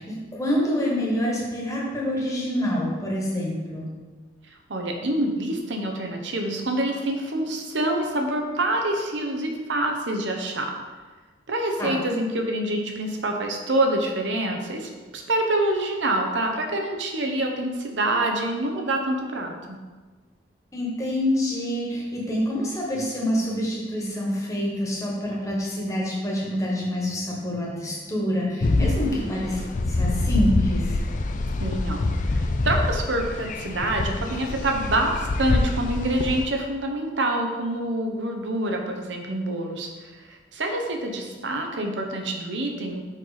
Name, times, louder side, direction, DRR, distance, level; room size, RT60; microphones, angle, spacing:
voice 1, 0.0-3.9 11.8-11.9 20.7-29.6 29.9-31.0, equal, 15° left, -4 dB, 1.4 m, -26 dB
voice 2, 4.7-10.7 11.5-19.8 31.6-43.0, right 1 dB, 75° right, 2 dB, 0.9 m, -26 dB
sound 1, 28.6-36.5, left 2 dB, 45° left, 0.4 m, -25 dB
5.7 x 5.1 x 4.1 m, 1.4 s
head